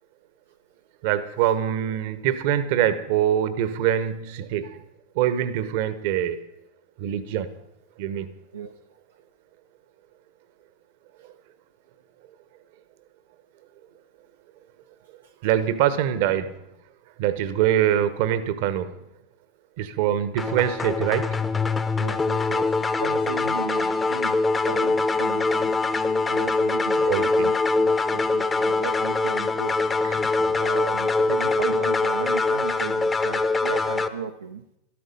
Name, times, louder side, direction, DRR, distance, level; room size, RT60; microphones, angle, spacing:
voice 1, 1.0-4.8 5.1-6.4 7.0-7.5 8.0-8.3 15.4-16.5 17.2-19.0 19.8-21.3 27.0-27.5 30.0-30.2, right 10 dB, 60° right, 13 dB, 1.1 m, -24 dB
sound 1, 20.4-34.1, left 3 dB, 20° left, 0.9 m, -23 dB
voice 2, 22.0-22.7 23.0-24.4 24.7-25.7 26.3-29.8 30.6-34.6, right 6 dB, 85° right, 2 dB, 0.7 m, -35 dB
13.5 x 13.0 x 5.4 m, 0.84 s
figure-of-eight pair, 85°, 0 cm